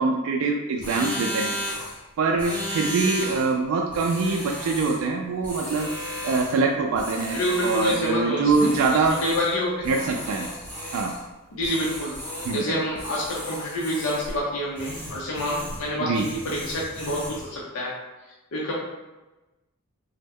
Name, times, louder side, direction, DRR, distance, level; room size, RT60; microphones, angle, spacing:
voice 1, 0.0-1.5 2.2-5.9 6.2-9.2 9.8-10.5 10.9-11.1 12.4-12.8 16.0-16.3, right 4 dB, 75° right, 1 dB, 0.3 m, -24 dB
sound 1, 0.8-2.0 2.4-3.5 3.9-5.1 5.4-6.6 6.9-8.2 8.5-9.6 9.8-11.2 11.6-12.7 13.0-14.4 14.8-15.9 16.1-17.5, equal, 5° left, 0.7 m, -34 dB
voice 2, 7.3-8.7 9.2-10.0 11.5-12.2 12.5-17.9 18.5-18.7, left 1 dB, 70° left, -4 dB, 0.6 m, -27 dB
3.1 x 2.0 x 3.5 m, 1.1 s
head